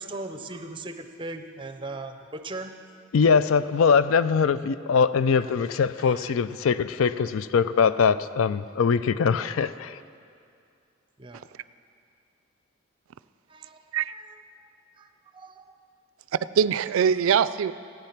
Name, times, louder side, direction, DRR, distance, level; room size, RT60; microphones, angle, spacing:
voice 1, 0.0-2.7 5.4-5.5 6.0-6.2 7.0-7.1 8.0-8.1 9.4-9.5 11.2-11.5 13.5-13.8 14.1-14.7 15.0-15.8, right 2 dB, 25° right, 8 dB, 0.6 m, -39 dB
voice 2, 3.1-10.0, left 6 dB, 80° left, 14 dB, 0.4 m, -22 dB
voice 3, 16.3-17.7, right 7 dB, 80° right, 16 dB, 0.3 m, -22 dB
15.0 x 9.2 x 5.9 m, 2.4 s
head